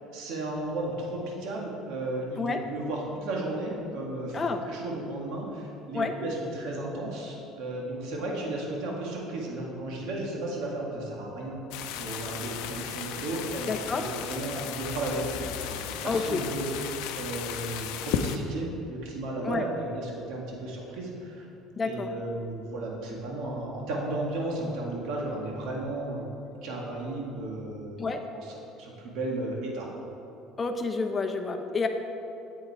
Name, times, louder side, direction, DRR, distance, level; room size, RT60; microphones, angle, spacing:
voice 1, 0.1-11.6 11.9-16.7 17.1-21.5 21.8-26.3 26.6-28.1 28.8-29.9, right 2 dB, 70° right, -1 dB, 1.8 m, -34 dB
sound 1, 11.7-18.4, left 9 dB, 80° left, 0.6 m, -35 dB
voice 2, 13.7-14.0 16.0-16.4 19.4-19.7 21.7-22.1 28.0-28.2 30.6-31.9, left 4 dB, 25° left, 4 dB, 0.8 m, -29 dB
8.6 x 7.7 x 4.7 m, 2.8 s
supercardioid pair, 105°, 0 cm